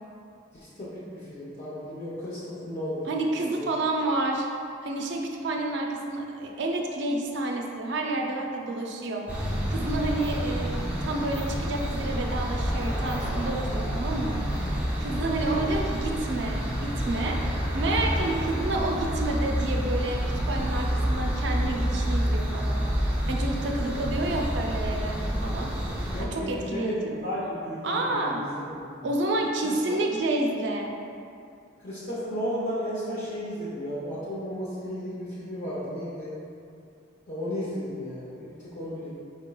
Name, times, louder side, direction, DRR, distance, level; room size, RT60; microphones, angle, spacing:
voice 1, 0.5-3.6 15.4-15.6 26.1-29.1 29.6-30.2 31.8-36.3 37.3-39.1, equal, 35° left, -9 dB, 0.7 m, -34 dB
voice 2, 3.1-4.5 4.8-22.9 23.3-27.1 27.8-28.4 29.0-30.9, right 2 dB, 60° right, 1 dB, 0.4 m, -30 dB
sound 1, 9.3-26.2, equal, 5° right, 0.5 m, -28 dB
4.6 x 4.4 x 2.3 m, 2.5 s
head